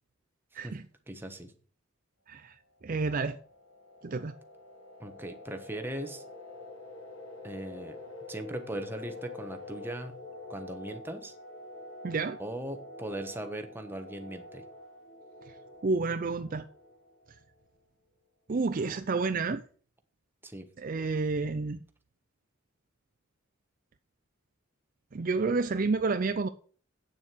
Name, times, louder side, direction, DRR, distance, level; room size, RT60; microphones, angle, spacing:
voice 1, 1.1-1.5 5.0-6.2 7.4-8.0 8.3-10.1 10.5-11.3 12.4-14.6 20.4-20.7, right 1 dB, 10° right, 1.2 m, -39 dB
voice 2, 2.3-2.6 2.8-3.4 4.0-4.4 12.0-12.4 15.5-15.6 15.8-16.6 18.5-19.6 20.8-21.8 25.1-26.5, right 4 dB, 40° right, 0.5 m, -30 dB
sound 1, 3.0-17.5, left 2 dB, 75° left, 2.9 m, -47 dB
8.7 x 7.2 x 6.1 m
head